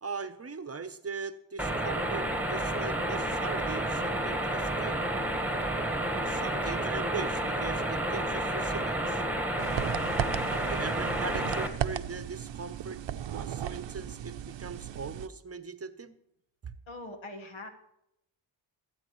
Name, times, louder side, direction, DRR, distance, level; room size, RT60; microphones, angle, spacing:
voice 1, 0.0-5.0 6.1-9.2 10.5-13.0 13.3-16.2 16.6-16.7, right 4 dB, 30° right, 12 dB, 0.8 m, -40 dB
sound 1, 1.6-11.7, right 1 dB, 5° right, 1.5 m, -30 dB
sound 2, 9.6-15.3, right 10 dB, 70° right, 0.7 m, -36 dB
voice 2, 16.9-17.7, left 2 dB, 80° left, 6 dB, 1.6 m, -42 dB
20.5 x 8.8 x 3.1 m, 0.82 s
cardioid pair, 70°, 46 cm